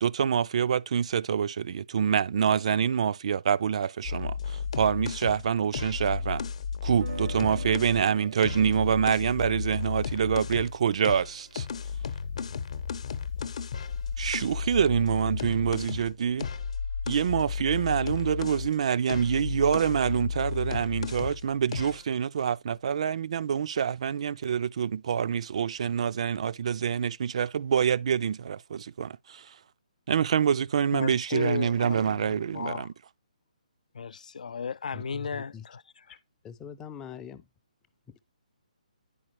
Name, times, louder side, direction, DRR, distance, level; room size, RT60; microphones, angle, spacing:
voice 1, 0.0-6.4 6.8-11.7 14.2-16.5 17.1-29.6 30.1-32.9, right 7 dB, 50° right, 0.3 m, -26 dB
sound 1, 4.0-8.0 8.4-10.8 11.0-18.7 19.1-21.4 21.7-22.0, left 6 dB, 55° left, 0.8 m, -33 dB
sound 2, 6.9-12.8, right 5 dB, 75° right, 0.7 m, -45 dB
voice 2, 30.9-32.9 33.9-36.2, left 5 dB, 75° left, 0.3 m, -35 dB
voice 3, 34.9-35.7 36.1-36.2 36.4-37.5, left 7 dB, 10° left, 0.5 m, -43 dB
9.8 x 4.9 x 3.0 m
hypercardioid pair, 160°, 4 cm